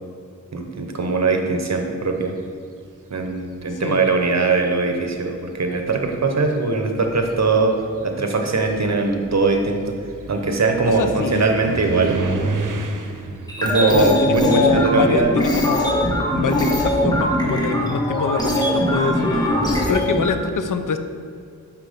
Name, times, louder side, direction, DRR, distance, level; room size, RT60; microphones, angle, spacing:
voice 1, 0.5-2.4 3.1-7.7 8.0-10.0 10.3-12.2 13.6-15.3 19.7-20.0, right 3 dB, 60° right, 4 dB, 1.0 m, -21 dB
sound 1, 3.5-4.1 5.1-5.2 5.7-15.6 15.9-18.5, right 2 dB, 80° right, 0.7 m, -32 dB
voice 2, 3.8-4.1 10.9-11.5 13.9-15.9 16.3-21.0, left 5 dB, 80° left, 9 dB, 0.6 m, -24 dB
sound 2, 13.5-20.3, equal, 15° left, 1.4 m, -21 dB
5.9 x 5.9 x 5.0 m, 2.3 s
wide cardioid pair, 60°, 31 cm